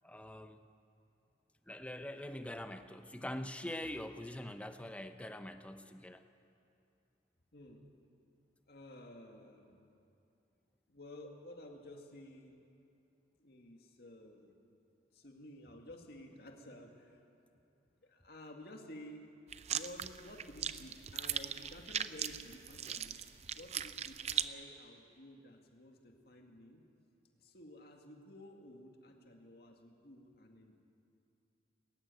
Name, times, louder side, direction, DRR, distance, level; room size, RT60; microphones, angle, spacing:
voice 1, 0.0-0.6 1.7-6.2, left 1 dB, 5° left, 8 dB, 0.8 m, -44 dB
voice 2, 7.5-7.9 8.7-9.8 10.9-12.6 13.4-14.6 15.1-17.2 17.5-17.6 18.0-19.3 19.7-26.8 27.3-30.8, left 1 dB, 60° left, 2 dB, 2.2 m, -53 dB
sound 1, 19.5-24.5, right 9 dB, 35° right, 0.5 m, -39 dB
20.5 x 15.5 x 9.5 m, 2.6 s
head